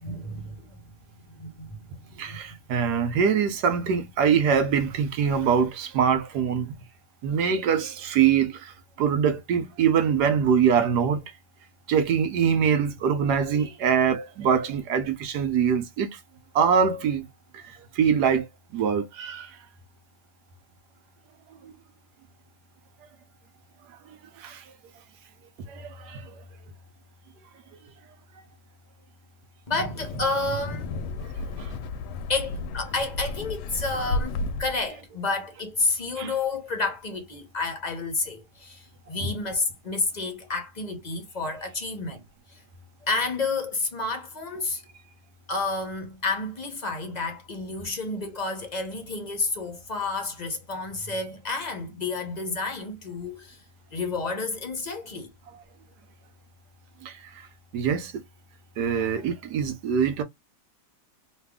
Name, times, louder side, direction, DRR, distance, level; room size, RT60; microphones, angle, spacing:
voice 1, 0.0-0.7 1.3-1.8 2.3-2.4 29.7-31.3 31.6-31.7 32.3-42.2 42.5-42.6 43.0-44.8 45.5-53.6 53.9-55.3, left 3 dB, 45° left, 0.5 m, -30 dB
voice 2, 2.2-6.7 7.2-8.7 9.0-11.2 11.9-16.2 16.5-17.3 17.5-17.6 17.9-18.5 18.7-19.5 21.6-21.7 24.4-24.6 25.6-26.3 31.6-31.7 36.2-36.3 57.0-57.3 57.7-58.1 58.8-60.2, right 7 dB, 80° right, 1.3 m, -23 dB
Wind, 29.8-34.9, left 3 dB, 80° left, 1.1 m, -33 dB
3.2 x 2.4 x 3.4 m
omnidirectional pair, 1.8 m